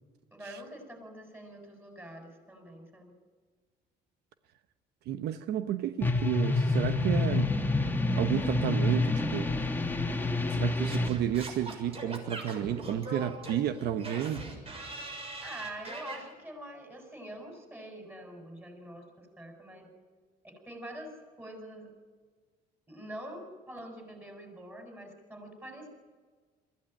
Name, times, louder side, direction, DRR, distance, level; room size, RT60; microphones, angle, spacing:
voice 1, 0.3-3.1 15.4-19.9 20.4-21.1 21.4-21.9 22.9-25.9, right 1 dB, 10° right, 3 dB, 6.9 m, -45 dB
voice 2, 5.1-7.5 8.2-9.5 10.5-14.4, right 10 dB, 75° right, 10 dB, 1.0 m, -32 dB
sound 1, 6.0-11.1, left 2 dB, 10° left, 1.9 m, -28 dB
Singing / Scratching (performance technique), 10.9-16.2, right 2 dB, 35° right, 6.8 m, -41 dB
23.0 x 15.5 x 9.1 m, 1.5 s
cardioid pair, 110°, 17 cm